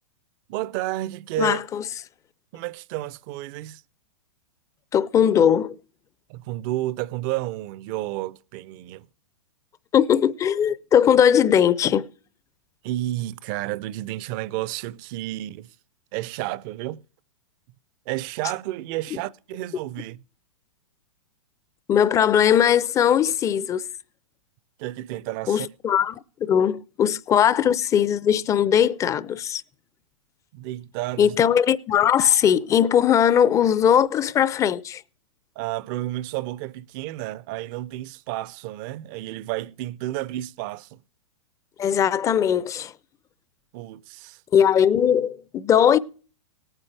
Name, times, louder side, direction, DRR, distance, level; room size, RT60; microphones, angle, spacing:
voice 1, 0.5-1.6 2.5-3.8 6.3-9.1 12.8-15.7 16.1-17.0 18.1-20.2 24.8-25.7 30.5-31.4 35.6-41.0 43.7-44.4, right 16 dB, 40° right, 0.5 m, -31 dB
voice 2, 1.4-1.8 4.9-5.8 9.9-12.1 21.9-23.8 25.5-29.6 31.2-35.0 41.8-42.9 44.5-46.0, left 9 dB, 20° left, 0.5 m, -19 dB
18.5 x 9.0 x 3.3 m
hypercardioid pair, 120°, 17 cm